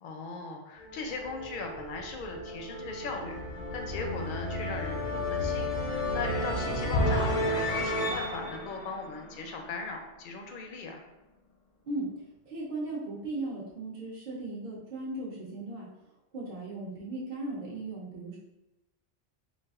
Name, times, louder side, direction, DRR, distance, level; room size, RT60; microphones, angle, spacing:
voice 1, 0.0-3.4 3.7-11.0, left 3 dB, 60° left, 3 dB, 0.6 m, -38 dB
sound 1, 0.8-9.8, left 1 dB, 85° left, 1.0 m, -32 dB
voice 2, 12.5-15.9 16.3-18.4, right 2 dB, 50° right, -6 dB, 0.7 m, -37 dB
4.0 x 2.4 x 2.4 m, 0.96 s
omnidirectional pair, 1.1 m